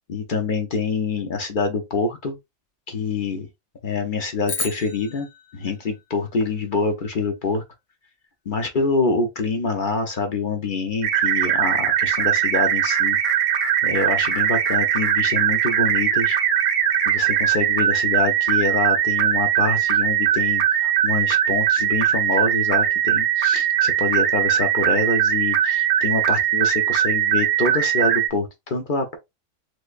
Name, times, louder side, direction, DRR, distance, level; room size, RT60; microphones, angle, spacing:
voice 1, 0.1-2.4 2.9-3.5 3.8-5.3 5.5-7.6 8.5-13.2 13.8-16.4 17.1-29.2, left 4 dB, 45° left, 0.7 m, -25 dB
sound 1, 4.4-6.9, left 4 dB, 85° left, 1.6 m, -34 dB
sound 2, 11.0-28.3, right 10 dB, 70° right, 1.1 m, -20 dB
3.3 x 3.2 x 2.4 m
omnidirectional pair, 1.6 m